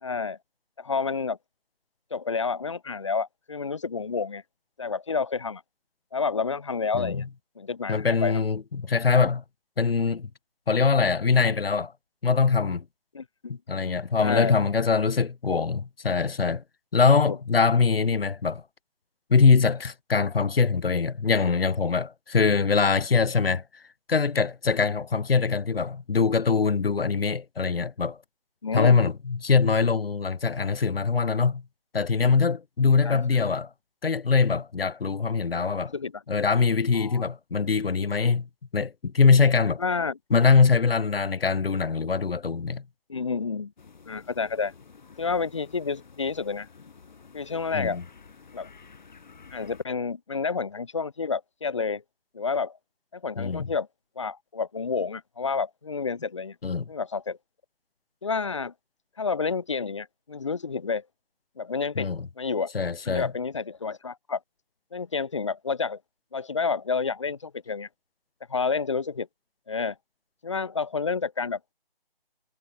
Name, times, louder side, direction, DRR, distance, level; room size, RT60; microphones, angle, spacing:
voice 1, 0.0-0.4 0.8-1.4 2.1-4.4 4.8-5.6 6.1-7.2 7.6-8.4 13.1-13.6 14.2-14.5 17.3-17.4 28.6-29.0 32.8-33.2 35.9-36.2 36.9-37.2 39.8-40.2 43.1-43.7 44.1-44.7 45.2-46.7 47.3-48.0 48.5-48.7 49.5-52.0 52.3-52.8 53.1-53.9 54.2-56.6 56.9-57.4 58.2-58.7 59.2-61.0 61.6-62.7 63.1-64.4 64.9-66.0 66.3-67.9 68.5-69.3 69.7-70.0 70.4-71.7, left 5 dB, 30° left, 0.6 m, -29 dB
voice 2, 6.9-7.3 7.9-9.4 9.8-10.3 10.7-11.9 12.2-12.8 13.5-16.6 16.9-18.6 19.3-23.6 24.1-28.2 28.7-31.6 31.9-33.7 34.0-35.9 36.3-38.5 38.7-39.8 40.3-42.8 47.7-48.0 53.4-53.7 56.6-56.8 62.0-62.3 62.7-63.3, left 5 dB, 80° left, 1.0 m, -23 dB
sound 1, 43.8-49.8, left 5 dB, 50° left, 3.9 m, -51 dB
figure-of-eight pair, 160°, 29 cm